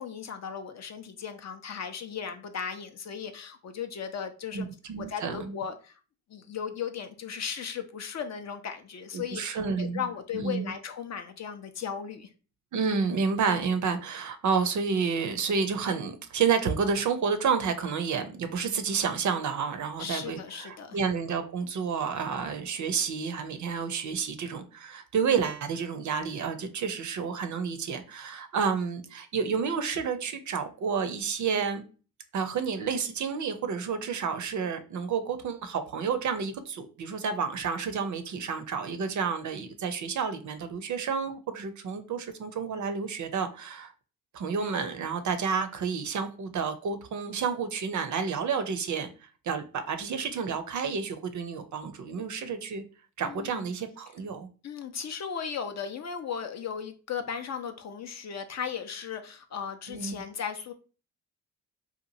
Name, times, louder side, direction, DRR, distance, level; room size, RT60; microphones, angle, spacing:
voice 1, 0.0-4.7 5.0-6.0 6.3-12.3 20.0-21.0 53.2-53.6 54.6-60.7, left 7 dB, 40° left, 0.5 m, -36 dB
voice 2, 4.5-5.5 9.1-10.0 10.3-10.7 12.7-31.8 32.3-43.9 44.3-49.1 49.4-52.8 53.2-54.5 59.9-60.1, right 6 dB, 45° right, 0.5 m, -30 dB
2.8 x 2.4 x 2.7 m
hypercardioid pair, 50°, 43 cm